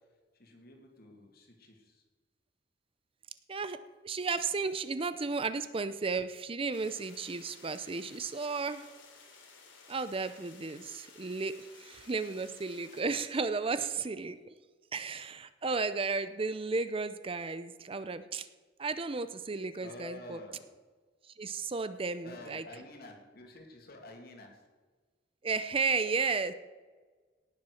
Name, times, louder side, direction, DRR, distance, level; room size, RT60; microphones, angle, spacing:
voice 1, 0.3-2.0 19.8-20.7 22.2-24.6, left 2 dB, 55° left, 2 dB, 2.4 m, -49 dB
voice 2, 4.0-8.9 9.9-14.4 14.9-18.5 18.8-20.4 21.3-22.6 25.4-26.5, right 4 dB, 30° right, 12 dB, 0.5 m, -34 dB
sound 1, 6.7-13.0, left 4 dB, 75° left, 3.1 m, -56 dB
18.0 x 7.3 x 6.4 m, 1.4 s
head